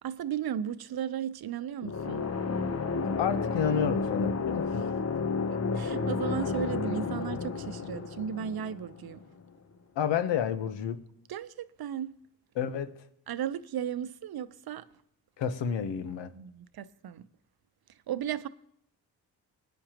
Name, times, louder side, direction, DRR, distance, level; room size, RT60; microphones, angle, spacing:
voice 1, 0.0-2.3 4.8-4.9 5.5-9.2 11.3-12.2 13.3-14.9 16.3-17.3 18.1-18.5, right 9 dB, 55° right, 0.8 m, -35 dB
sound 1, 1.8-9.5, left 4 dB, 35° left, 1.0 m, -31 dB
voice 2, 3.2-4.9 9.9-11.0 12.5-12.9 15.4-16.3, left 8 dB, 75° left, 1.2 m, -30 dB
20.5 x 9.6 x 3.0 m
supercardioid pair, 45°, 44 cm